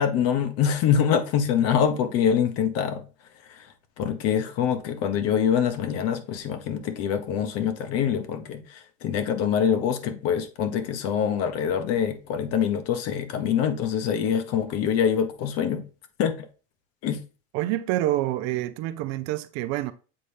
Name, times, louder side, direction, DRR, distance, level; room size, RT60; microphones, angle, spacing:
voice 1, 0.0-3.0 3.5-3.6 4.0-15.8 16.2-16.5 17.0-17.2, left 8 dB, 45° left, 1.2 m, -25 dB
voice 2, 17.5-19.9, right 15 dB, 50° right, 0.7 m, -27 dB
7.7 x 4.2 x 3.4 m
supercardioid pair, 120°, 33 cm